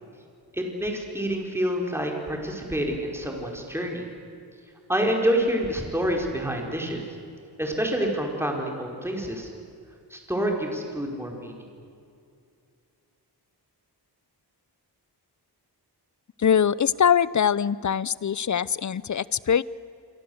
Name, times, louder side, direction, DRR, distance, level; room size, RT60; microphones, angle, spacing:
voice 1, 0.5-4.1 4.9-7.0 7.6-9.5 10.1-11.7, right 1 dB, 5° right, 1 dB, 4.7 m, -27 dB
voice 2, 16.4-19.6, left 8 dB, 45° left, 20 dB, 0.7 m, -22 dB
27.0 x 24.5 x 8.0 m, 2.5 s
wide cardioid pair, 100°, 41 cm